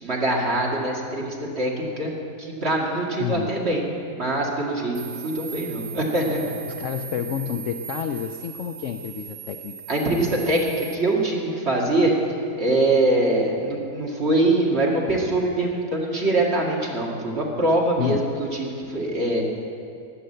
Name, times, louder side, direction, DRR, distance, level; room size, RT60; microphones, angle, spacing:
voice 1, 0.0-6.6 9.9-12.2 12.6-19.4, right 2 dB, 35° right, -2 dB, 2.3 m, -23 dB
voice 2, 3.2-3.5 6.8-9.7 18.0-18.3, left 9 dB, 80° left, 7 dB, 0.6 m, -29 dB
sound 1, 4.9-10.9, right 9 dB, 85° right, 1.4 m, -38 dB
19.5 x 6.6 x 7.8 m, 2.5 s
omnidirectional pair, 1.9 m